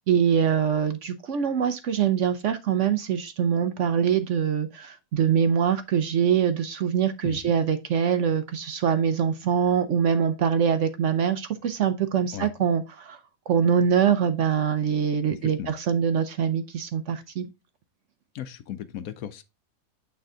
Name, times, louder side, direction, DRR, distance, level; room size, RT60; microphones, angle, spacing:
voice 1, 0.0-13.2 13.5-17.5, right 7 dB, 65° right, 0.8 m, -24 dB
voice 2, 15.3-15.7 18.3-19.4, left 10 dB, 70° left, 1.0 m, -36 dB
8.9 x 3.4 x 3.7 m
omnidirectional pair, 1.6 m